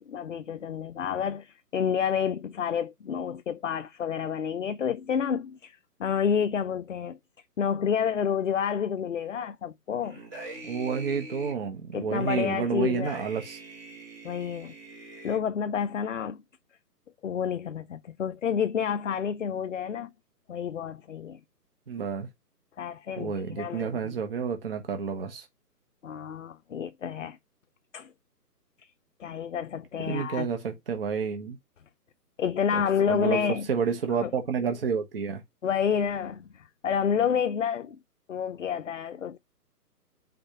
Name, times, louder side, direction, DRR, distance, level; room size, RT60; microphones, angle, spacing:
voice 1, 0.0-7.2 7.6-10.2 11.9-13.2 14.2-14.7 15.2-16.4 17.2-20.1 20.5-21.4 22.8-24.2 26.0-27.4 27.9-28.1 29.2-30.5 32.4-33.7 34.2-34.3 35.6-38.0 38.3-39.4, left 7 dB, 50° left, 0.6 m, -29 dB
sound 1, 10.0-11.5 12.2-15.4, right 2 dB, 10° right, 1.2 m, -44 dB
voice 2, 10.6-13.6 21.9-22.3 23.2-25.4 30.1-31.6 32.7-33.4 33.7-35.4, right 6 dB, 35° right, 1.4 m, -30 dB
5.1 x 4.1 x 5.8 m
hypercardioid pair, 160°, 48 cm